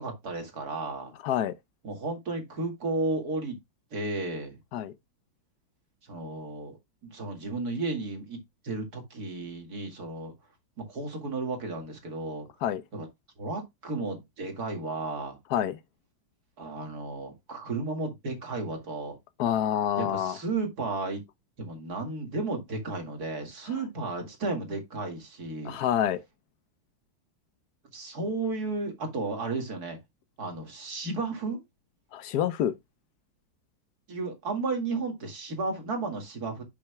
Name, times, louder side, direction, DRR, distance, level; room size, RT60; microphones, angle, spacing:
voice 1, 0.0-1.1 1.8-3.6 3.9-4.6 6.0-6.8 7.0-10.3 10.8-12.5 12.9-13.1 13.4-15.4 16.6-19.2 20.0-21.2 21.6-25.8 27.9-30.0 30.4-31.6 34.1-36.6, right 3 dB, 50° right, 2.5 m, -33 dB
voice 2, 1.2-1.6 4.7-4.9 12.6-12.8 15.5-15.8 19.4-20.4 25.6-26.2 32.1-32.7, left 10 dB, 65° left, 1.0 m, -27 dB
10.5 x 6.5 x 2.3 m
omnidirectional pair, 2.2 m